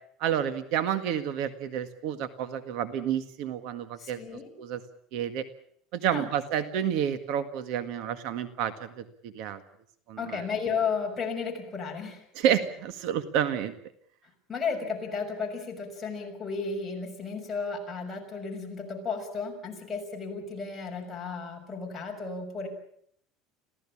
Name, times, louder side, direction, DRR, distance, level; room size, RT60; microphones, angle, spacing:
voice 1, 0.2-4.2 4.6-4.8 5.1-5.4 5.9-9.6 10.1-10.4 12.4-13.7, right 9 dB, 60° right, 10 dB, 1.8 m, -29 dB
voice 2, 4.0-4.5 6.1-6.3 10.2-12.3 14.5-22.7, left 5 dB, 15° left, -1 dB, 6.5 m, -33 dB
27.0 x 16.5 x 8.7 m, 0.66 s
cardioid pair, 160°, 0 cm